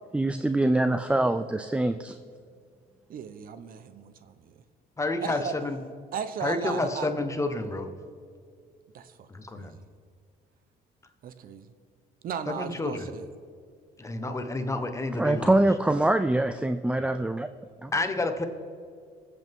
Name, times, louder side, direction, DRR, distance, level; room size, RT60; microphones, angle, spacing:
voice 1, 0.1-2.2 15.2-17.5 17.8-17.9, right 1 dB, 5° right, 10 dB, 0.4 m, -24 dB
voice 2, 3.1-4.6 5.2-5.6 6.1-7.1 8.9-9.3 9.5-9.8 11.2-11.7 12.2-13.2, right 7 dB, 60° right, 11 dB, 0.8 m, -36 dB
voice 3, 5.0-5.8 6.4-7.9 9.3-9.8 12.5-13.1 14.0-15.5 17.9-18.4, left 2 dB, 15° left, 6 dB, 1.2 m, -29 dB
20.0 x 8.1 x 3.7 m, 2.2 s
cardioid pair, 110°, 17 cm